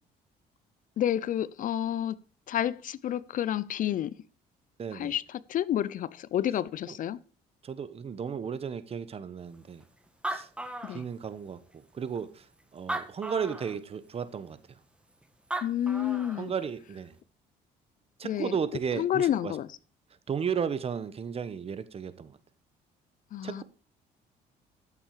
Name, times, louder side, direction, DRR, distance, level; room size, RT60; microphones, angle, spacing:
voice 1, 1.0-2.2 2.5-4.1 4.9-7.2 10.8-11.0 15.6-16.5 18.2-18.6 19.0-19.7 23.3-23.6, left 11 dB, 50° left, 0.5 m, -29 dB
voice 2, 4.8-5.2 6.9-7.0 7.6-9.8 10.3-10.5 10.9-12.4 12.7-14.6 16.4-17.1 18.2-19.5 20.3-22.4 23.4-23.6, right 7 dB, 35° right, 1.1 m, -34 dB
Animal, 9.8-9.9 10.1-11.5 12.1-12.2 12.8-13.8 15.2-15.3 15.5-16.5, right 2 dB, 5° right, 1.2 m, -36 dB
13.0 x 7.3 x 4.9 m
cardioid pair, 110°, 17 cm